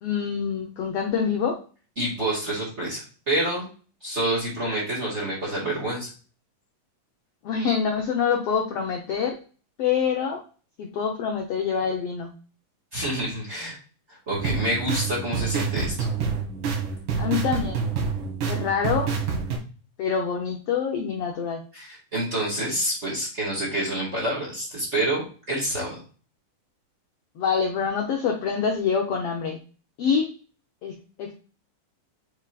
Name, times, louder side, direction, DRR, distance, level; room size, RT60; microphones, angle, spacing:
voice 1, 0.0-1.6 7.4-9.4 9.8-10.4 10.8-12.3 17.2-17.9 18.4-19.1 20.0-21.6 27.4-29.6 30.0-30.3 30.8-31.3, left 6 dB, 80° left, 2 dB, 1.3 m, -26 dB
voice 2, 2.0-3.7 4.0-6.1 12.9-13.8 14.1-16.1 21.7-26.0, right 1 dB, 25° right, -4 dB, 1.8 m, -28 dB
sound 1, 14.3-19.6, right 5 dB, 70° right, 3.3 m, -27 dB
7.9 x 4.8 x 2.5 m, 0.37 s
omnidirectional pair, 3.9 m